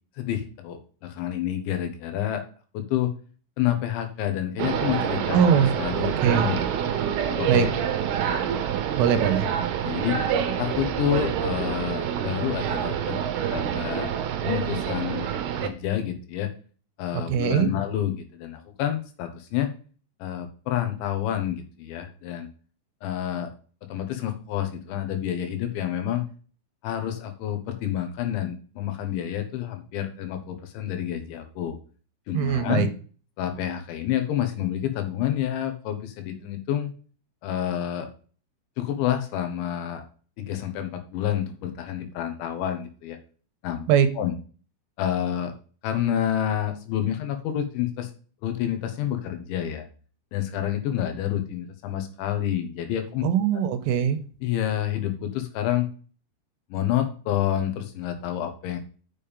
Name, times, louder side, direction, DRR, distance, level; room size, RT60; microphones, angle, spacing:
voice 1, 0.2-2.4 2.7-3.1 3.6-6.6 7.3-7.7 9.8-10.2 10.6-13.2 13.5-14.1 14.4-15.3 15.6-16.5 17.0-19.7 20.2-22.5 23.0-23.5 23.9-26.2 26.8-31.8 32.3-32.9 33.4-36.9 37.4-38.1 38.8-40.0 40.4-43.2 43.6-43.9 44.2-44.3 45.0-45.5 45.8-48.1 48.4-49.9 50.3-53.2 54.4-55.9 56.7-58.8, left 11 dB, 75° left, 6 dB, 3.4 m, -28 dB
sound 1, 4.6-15.7, right 8 dB, 70° right, 2.5 m, -27 dB
voice 2, 5.3-5.7 6.2-6.5 7.5-7.7 9.0-9.5 17.1-17.7 32.3-32.9 43.9-44.1 53.2-54.2, right 8 dB, 90° right, 10 dB, 3.3 m, -21 dB
7.1 x 6.8 x 5.2 m, 0.39 s
omnidirectional pair, 5.7 m